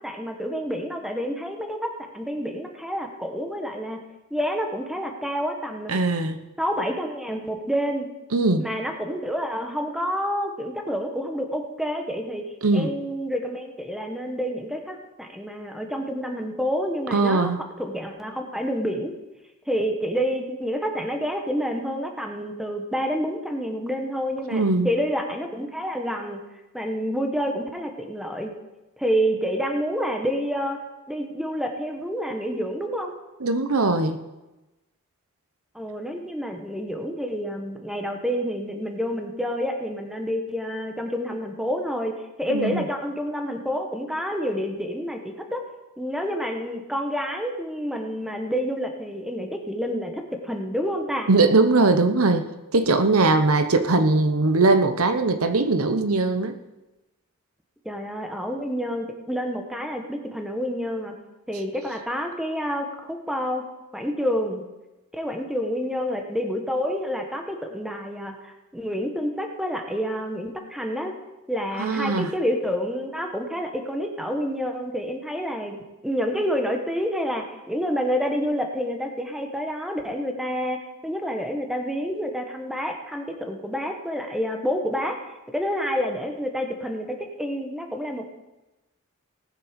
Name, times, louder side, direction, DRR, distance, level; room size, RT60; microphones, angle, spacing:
voice 1, 0.0-4.0 4.3-5.9 6.6-8.1 8.6-17.5 17.8-19.1 19.7-26.4 26.7-28.5 29.0-30.8 31.1-33.1 35.7-42.1 42.4-45.6 46.0-51.3 57.8-61.2 61.5-63.6 63.9-64.7 65.1-71.1 71.5-75.8 76.0-85.2 85.5-88.3, equal, ahead, 3 dB, 1.2 m, -28 dB
voice 2, 5.9-6.4 8.3-8.7 12.6-12.9 17.1-17.6 24.5-24.9 33.4-34.2 42.5-42.8 51.3-52.5 52.7-56.6 71.8-72.3, right 3 dB, 75° right, 9 dB, 0.9 m, -20 dB
18.5 x 7.6 x 5.2 m, 1.0 s
head